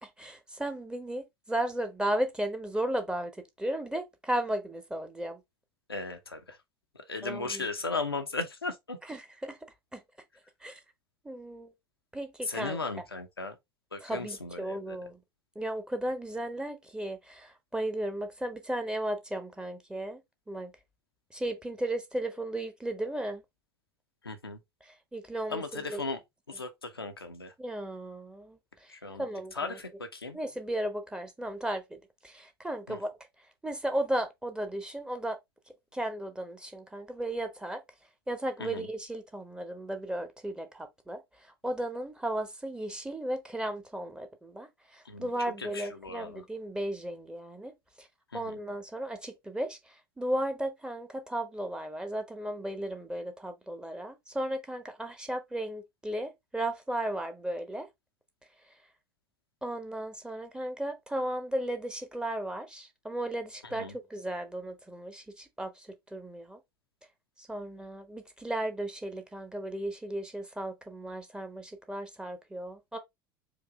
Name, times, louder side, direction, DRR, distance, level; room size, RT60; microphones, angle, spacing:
voice 1, 0.0-3.3 3.6-5.4 7.2-7.6 9.1-9.6 9.9-10.0 10.6-10.8 11.2-11.7 12.1-12.8 14.0-15.2 15.5-20.2 20.5-20.7 21.3-23.4 25.1-26.0 27.6-28.6 29.2-29.8 30.3-32.0 32.2-33.1 33.6-35.4 35.9-37.8 38.3-41.2 41.6-48.1 48.3-49.8 50.2-57.9 59.6-66.6 67.4-73.0, right 1 dB, 5° right, 0.9 m, -35 dB
voice 2, 5.9-6.6 6.9-9.0 12.4-13.6 13.9-15.0 24.2-24.6 25.5-26.2 26.5-27.5 28.9-29.3 29.5-30.4 32.9-33.0 38.6-38.9 45.0-46.4 48.3-48.6 63.6-64.0, left 3 dB, 85° left, 0.7 m, -37 dB
4.8 x 2.6 x 3.5 m
figure-of-eight pair, 70°, 12 cm